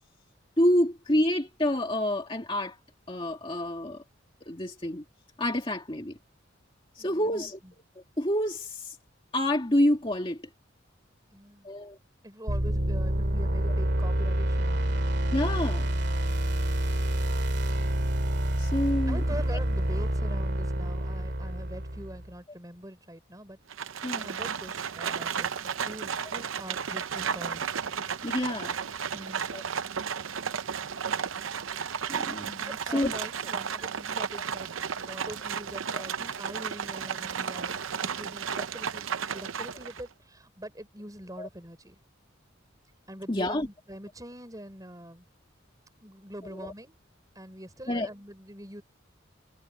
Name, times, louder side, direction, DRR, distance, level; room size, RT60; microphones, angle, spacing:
voice 1, 0.6-2.8 3.1-4.0 4.5-5.0 5.4-6.2 7.0-7.6 8.2-9.0 9.3-10.4 11.6-12.0 15.3-15.9 18.6-19.2 24.0-24.3 28.2-28.7 29.5-29.6 32.2-33.1 35.9-36.0 41.4-41.5 43.3-43.7 46.5-46.6 47.9-48.1, left 1 dB, 25° left, 2.1 m, -28 dB
voice 2, 7.0-7.5 11.3-11.7 12.2-15.0 19.1-23.6 24.2-27.6 29.1-29.5 32.6-34.7 35.0-42.0 43.1-45.3 46.0-47.0 47.4-48.8, right 1 dB, 20° right, 6.0 m, -44 dB
sound 1, 12.5-22.3, right 1 dB, 55° right, 2.5 m, -27 dB
Livestock farm animals working animals, 23.7-40.1, right 7 dB, 80° right, 0.7 m, -33 dB
head